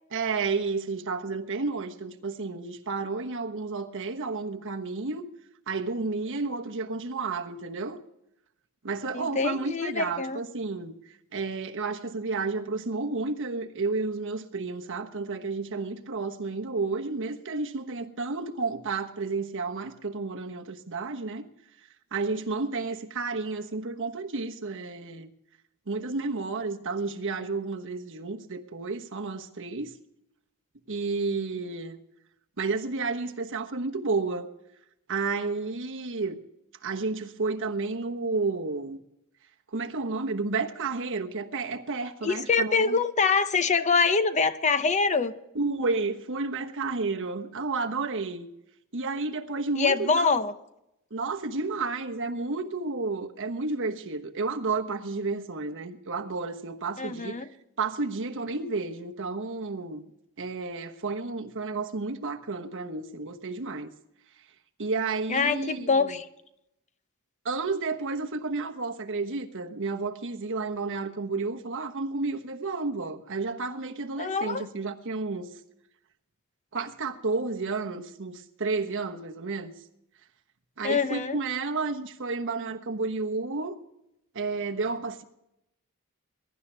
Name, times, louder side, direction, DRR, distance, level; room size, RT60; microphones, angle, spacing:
voice 1, 0.1-5.2 5.7-8.0 8.8-21.5 22.1-25.3 25.9-29.9 30.9-32.0 32.6-34.5 35.1-36.4 36.8-39.0 39.7-43.0 45.5-48.5 48.9-50.4 51.1-57.5 57.8-60.0 60.4-63.9 64.8-66.2 67.4-75.5 76.7-79.7 80.8-83.8 84.3-85.2, right 3 dB, 60° right, 1.2 m, -31 dB
voice 2, 9.1-10.4 42.2-45.4 49.8-50.5 57.0-57.5 65.3-66.3 74.2-74.6 80.8-81.4, left 4 dB, 30° left, 0.7 m, -25 dB
22.0 x 11.5 x 3.4 m
head